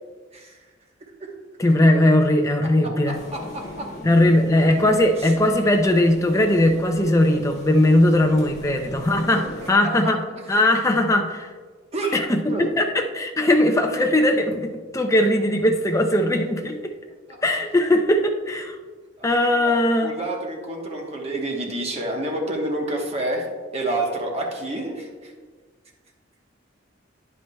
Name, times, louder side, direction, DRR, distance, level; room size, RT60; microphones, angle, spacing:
voice 1, 1.6-3.2 4.0-10.2 10.5-11.5 12.1-16.8 17.4-18.8 19.2-20.1, left 1 dB, 15° left, 3 dB, 0.5 m, -19 dB
sound 1, 3.1-9.7, left 1 dB, 40° left, 1.6 m, -40 dB
voice 2, 3.1-3.9 5.2-5.3 9.3-9.4 9.8-9.9 10.5-10.6 11.9-12.2 12.5-12.7 19.2-25.3, right 1 dB, 35° right, 0 dB, 1.2 m, -29 dB
10.0 x 8.3 x 2.3 m, 1.5 s
head